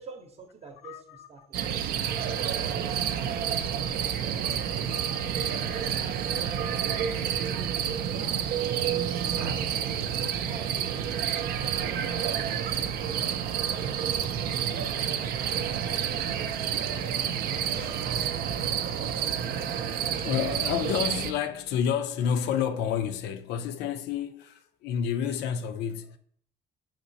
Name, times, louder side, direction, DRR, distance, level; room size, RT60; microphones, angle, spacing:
voice 1, 0.0-1.6 2.3-3.2 3.5-4.6 7.6-7.8 8.1-9.9 10.2-15.0, right 4 dB, 40° right, 0.7 m, -49 dB
voice 2, 0.8-1.7 2.7-2.9 3.3-4.0 6.3-7.6 13.1-13.3 14.1-15.0 15.6-15.9 16.9-18.0 19.4-26.2, left 8 dB, 80° left, 0.4 m, -32 dB
sound 1, 1.5-21.3, right 8 dB, 65° right, 0.4 m, -29 dB
5.1 x 3.0 x 2.7 m
cardioid pair, 110°, 17 cm